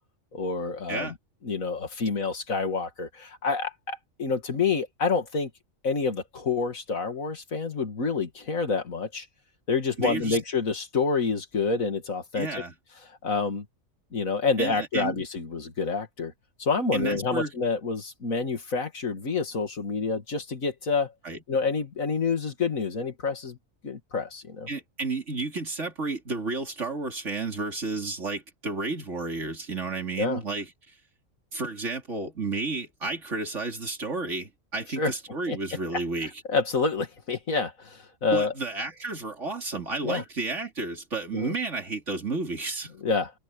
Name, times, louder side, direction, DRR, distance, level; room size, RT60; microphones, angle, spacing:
voice 1, 0.3-1.1 1.4-5.5 5.8-9.3 9.7-12.5 13.1-13.7 14.1-16.3 16.6-21.1 21.5-23.6 23.8-24.7 30.2-30.4 35.0-35.1 35.5-35.6 35.9-38.5 40.0-40.2 41.3-41.5 43.0-43.3, left 4 dB, 80° left, 2.7 m, -28 dB
voice 2, 10.0-10.4 12.3-12.7 14.6-15.2 16.9-17.5 21.2-21.4 24.7-30.7 31.5-36.3 38.3-42.9, right 3 dB, 60° right, 3.6 m, -31 dB
omnidirectional pair, 1.4 m